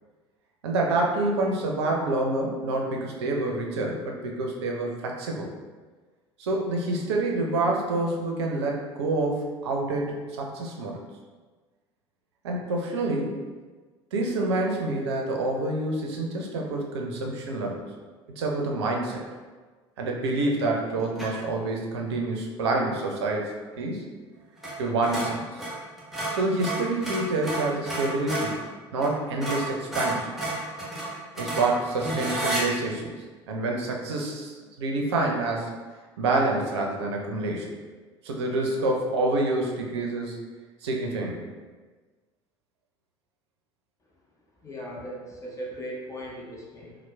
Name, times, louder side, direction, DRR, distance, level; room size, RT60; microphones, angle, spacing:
voice 1, 0.6-5.5 6.4-11.0 12.4-13.4 14.1-17.9 18.4-19.2 20.0-24.0 24.8-25.6 26.3-28.6 28.9-30.3 31.4-33.1 33.5-35.7 36.2-37.7 38.2-40.4 40.8-41.5, right 2 dB, 70° right, 0 dB, 0.5 m, -27 dB
sound 1, 21.2-21.5 24.6-24.8 25.0-28.6 29.0-29.1 29.4-32.6, right 2 dB, ahead, 1.0 m, -31 dB
voice 2, 44.6-47.0, equal, 20° left, -3 dB, 0.6 m, -38 dB
4.2 x 2.0 x 2.2 m, 1.4 s
figure-of-eight pair, 65°, 15 cm